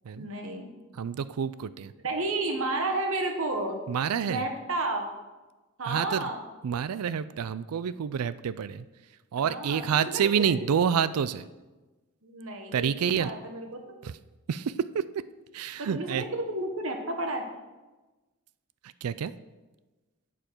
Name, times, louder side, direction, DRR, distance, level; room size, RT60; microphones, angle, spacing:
voice 1, 0.1-0.7 2.0-3.8 4.2-5.1 5.8-6.4 9.4-10.6 12.2-13.7 15.8-17.5, right 2 dB, 65° right, 4 dB, 1.5 m, -31 dB
voice 2, 0.9-1.9 3.9-4.5 5.9-6.3 6.6-8.9 9.3-11.5 12.7-13.3 14.0-14.1 14.5-15.2 15.5-16.2 19.0-19.3, right 7 dB, 85° right, 16 dB, 0.4 m, -28 dB
11.5 x 7.5 x 4.5 m, 1.2 s
head